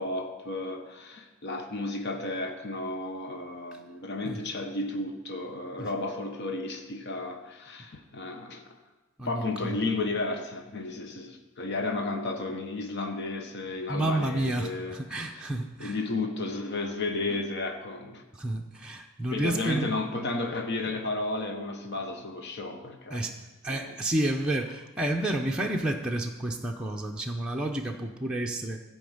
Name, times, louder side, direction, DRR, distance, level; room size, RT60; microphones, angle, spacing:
voice 1, 0.0-8.8 9.2-15.5 15.8-18.2 19.3-23.2 23.7-23.9, left 2 dB, 50° left, 4 dB, 1.0 m, -33 dB
voice 2, 9.2-9.8 13.9-16.0 18.3-19.9 23.1-23.4 23.6-28.8, right 1 dB, 5° right, -1 dB, 0.7 m, -30 dB
14.0 x 5.2 x 7.9 m, 1.1 s
head